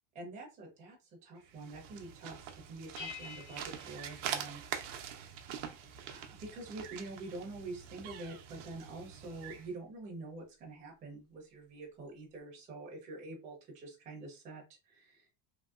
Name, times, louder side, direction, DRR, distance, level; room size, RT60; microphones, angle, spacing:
voice 1, 0.1-5.4 6.0-15.3, right 2 dB, 20° right, -2 dB, 0.8 m, -46 dB
sound 1, 1.4-9.7, right 8 dB, 75° right, 0.7 m, -44 dB
sound 2, 3.0-5.2, left 6 dB, 60° left, 1.0 m, -49 dB
2.8 x 2.8 x 2.4 m, 0.28 s
cardioid pair, 180°, 37 cm